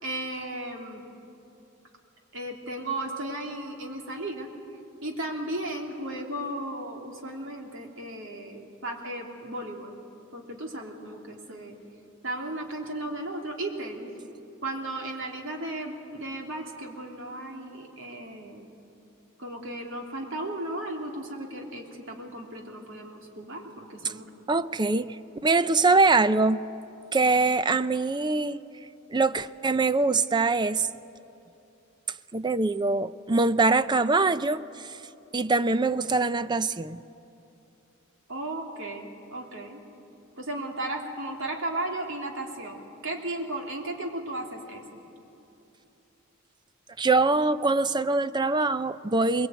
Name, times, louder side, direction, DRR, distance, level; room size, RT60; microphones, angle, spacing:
voice 1, 0.0-1.0 2.3-4.5 5.0-10.0 10.3-11.8 12.2-14.1 14.6-18.7 19.4-24.2 38.3-39.8 40.4-44.8, right 1 dB, 60° right, 1 dB, 3.1 m, -35 dB
voice 2, 24.5-26.6 27.1-28.6 29.1-30.9 32.3-35.0 35.3-37.0 47.0-49.5, right 3 dB, 20° right, 13 dB, 0.5 m, -23 dB
22.0 x 21.5 x 9.2 m, 2.8 s
head